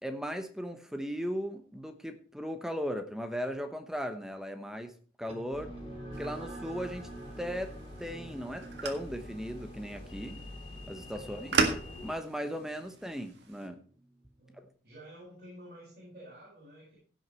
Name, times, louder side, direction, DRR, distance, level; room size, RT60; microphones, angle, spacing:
voice 1, 0.0-4.9 5.2-5.7 6.2-7.1 7.4-7.7 8.0-10.4 10.9-11.6 12.0-13.8, equal, 5° right, 7 dB, 1.1 m, -37 dB
sound 1, 5.3-14.1, right 1 dB, 35° right, 2.0 m, -48 dB
sound 2, 5.5-12.1, left 2 dB, 30° left, 2.7 m, -47 dB
sound 3, 6.1-13.7, right 4 dB, 85° right, 1.8 m, -37 dB
voice 2, 14.8-16.9, right 1 dB, 50° right, -7 dB, 6.2 m, -51 dB
16.0 x 6.5 x 4.5 m, 0.42 s
head